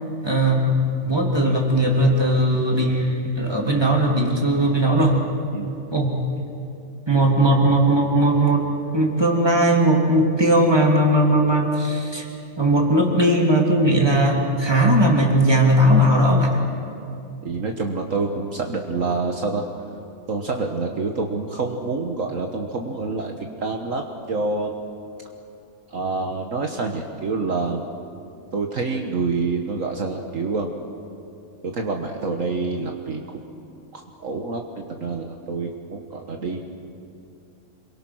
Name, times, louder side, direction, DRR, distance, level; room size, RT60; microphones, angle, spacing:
voice 1, 0.2-5.2 5.9-6.1 7.1-8.6 8.9-12.3 12.6-16.6, right 1 dB, 15° right, 0 dB, 3.0 m, -18 dB
voice 2, 17.4-19.6 20.3-24.7 25.9-27.9 28.5-30.7 31.6-33.2 33.9-36.6, right 3 dB, 60° right, 3 dB, 1.7 m, -27 dB
27.0 x 23.0 x 6.2 m, 2.7 s
omnidirectional pair, 1.6 m